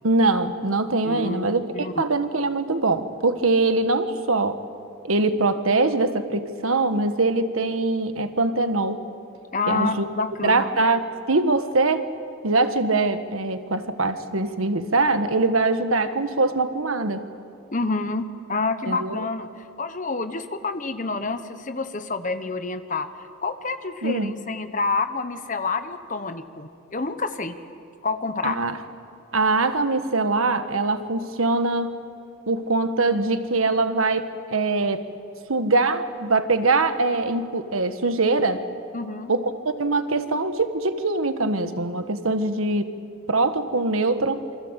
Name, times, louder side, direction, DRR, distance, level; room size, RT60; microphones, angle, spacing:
voice 1, 0.0-1.6 2.0-4.6 5.0-9.0 9.7-10.1 10.4-12.0 12.4-17.2 18.9-19.2 24.0-24.3 28.4-28.8 29.3-31.9 32.5-35.0 35.5-38.6 39.3-42.9 43.3-44.4, right 3 dB, 90° right, 9 dB, 1.5 m, -23 dB
voice 2, 1.0-2.0 9.5-10.7 17.7-19.5 19.8-23.1 23.4-27.5 28.0-28.6 38.9-39.3, left 3 dB, 40° left, 10 dB, 1.2 m, -28 dB
27.0 x 25.0 x 8.3 m, 2.5 s
head